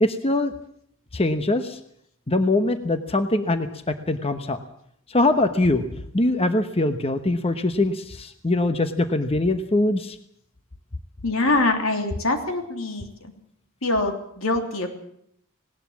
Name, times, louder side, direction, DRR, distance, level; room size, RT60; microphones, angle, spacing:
voice 1, 0.0-0.5 1.1-1.8 2.3-4.6 5.1-5.8 6.1-10.2, left 2 dB, 30° left, 9 dB, 1.0 m, -22 dB
voice 2, 11.2-13.1 13.8-14.9, left 2 dB, 80° left, 5 dB, 3.1 m, -24 dB
19.0 x 19.0 x 7.3 m, 0.70 s
head